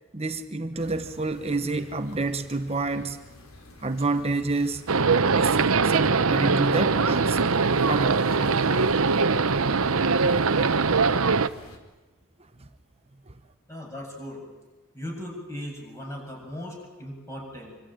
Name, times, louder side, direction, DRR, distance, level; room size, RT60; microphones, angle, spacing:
voice 1, 0.1-3.2 3.8-4.8 5.3-5.6 5.8-7.5 7.8-8.5 11.6-11.7 12.6-12.7 13.3-13.4, right 3 dB, 25° right, 8 dB, 1.0 m, -28 dB
sound 1, 0.8-11.8, left 1 dB, 70° left, 4.0 m, -47 dB
sound 2, 4.9-11.5, right 4 dB, 70° right, 0.9 m, -22 dB
voice 2, 13.7-14.5 14.9-17.8, left 1 dB, 15° left, 0 dB, 7.8 m, -38 dB
26.0 x 25.0 x 9.1 m, 1.2 s
head